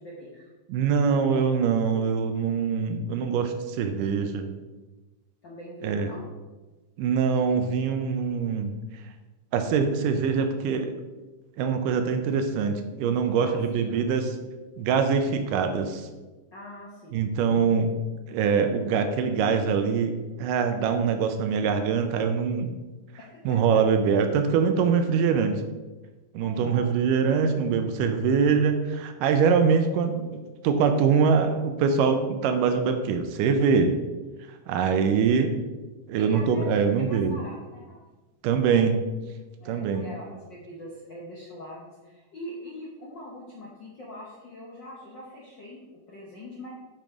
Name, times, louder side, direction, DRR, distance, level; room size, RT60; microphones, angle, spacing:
voice 1, 0.0-0.5 5.4-6.3 13.3-14.0 16.5-17.8 23.3-23.6 26.4-26.9 34.8-35.2 36.2-36.8 37.0-38.0 39.6-46.7, left 1 dB, 80° left, -4 dB, 1.0 m, -42 dB
voice 2, 0.7-4.5 5.8-6.1 7.0-8.7 9.5-10.9 11.6-14.3 14.8-16.1 17.1-17.9 18.3-22.8 23.5-25.6 26.3-30.4 30.6-34.0 34.7-35.5 36.1-37.4 38.4-39.0 39.7-40.1, right 6 dB, 80° right, 7 dB, 2.2 m, -23 dB
7.6 x 5.3 x 4.9 m, 1.2 s
omnidirectional pair, 3.9 m